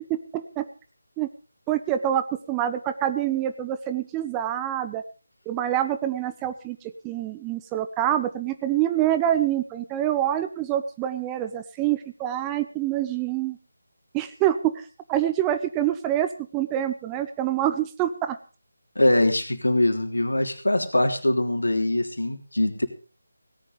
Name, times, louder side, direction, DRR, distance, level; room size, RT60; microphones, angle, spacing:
voice 1, 0.3-0.7 1.2-1.3 1.7-5.0 5.5-13.6 14.1-18.4, right 12 dB, 10° right, 9 dB, 0.6 m, -26 dB
voice 2, 18.9-22.9, left 1 dB, 70° left, 5 dB, 3.3 m, -22 dB
17.5 x 10.5 x 5.2 m, 0.35 s
figure-of-eight pair, 155°, 0 cm